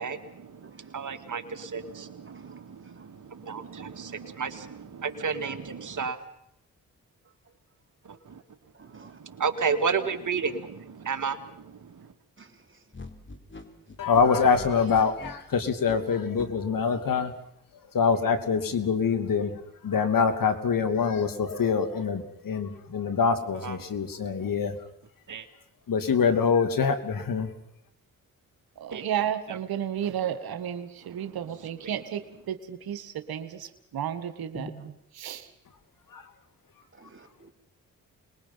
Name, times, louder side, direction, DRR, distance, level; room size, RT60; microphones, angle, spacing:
voice 1, 0.0-6.2 8.0-8.4 8.8-12.1 23.5-24.5 25.3-25.5 28.9-29.0 29.5-29.6 31.1-31.2 31.6-32.0, right 5 dB, 55° right, 8 dB, 2.4 m, -33 dB
voice 2, 2.3-3.1 8.7-9.2 12.4-12.8 34.5-34.7 36.9-37.5, equal, 35° right, 4 dB, 4.0 m, -48 dB
sound 1, 12.9-16.5, left 3 dB, 30° left, 3.8 m, -43 dB
voice 3, 14.0-17.3 17.9-19.5 19.8-24.7 25.9-27.5 36.1-36.2, left 5 dB, 65° left, 9 dB, 2.7 m, -25 dB
voice 4, 28.8-34.7 35.2-35.5, right 9 dB, 80° right, 9 dB, 1.6 m, -33 dB
26.5 x 21.5 x 5.7 m, 0.74 s
supercardioid pair, 50°, 36 cm